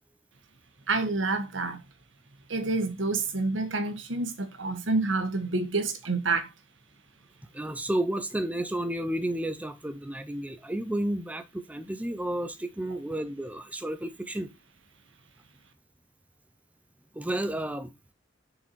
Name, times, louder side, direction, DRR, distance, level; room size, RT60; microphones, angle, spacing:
voice 1, 0.9-1.8 2.5-6.5, right 3 dB, 75° right, 1.5 m, -28 dB
voice 2, 7.5-14.5 17.1-17.9, right 1 dB, 10° right, 0.6 m, -31 dB
6.8 x 4.8 x 4.6 m
head